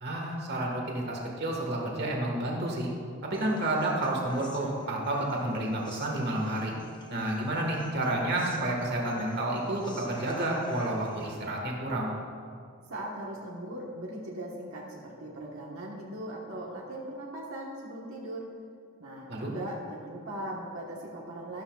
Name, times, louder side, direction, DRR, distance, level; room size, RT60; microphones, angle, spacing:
voice 1, 0.0-2.9 3.2-6.7 7.1-12.1 19.3-19.5, right 1 dB, 50° right, -1 dB, 1.6 m, -30 dB
Human voice, 3.3-11.3, left 1 dB, 20° left, 0.8 m, -46 dB
voice 2, 12.9-18.5 19.0-21.6, right 1 dB, 75° right, -3 dB, 1.3 m, -39 dB
12.5 x 12.0 x 2.4 m, 2.2 s
head